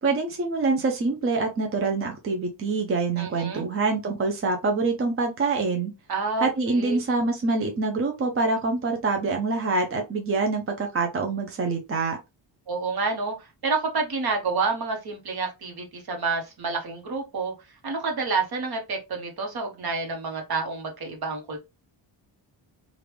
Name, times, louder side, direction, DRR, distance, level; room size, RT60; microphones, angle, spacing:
voice 1, 0.0-5.9 6.4-12.2, right 3 dB, 30° right, 0.5 m, -25 dB
voice 2, 3.2-3.7 6.1-7.0 12.7-17.5 17.8-21.6, right 4 dB, 55° right, 1.1 m, -29 dB
3.4 x 2.5 x 3.0 m
wide cardioid pair, 150°, 45 cm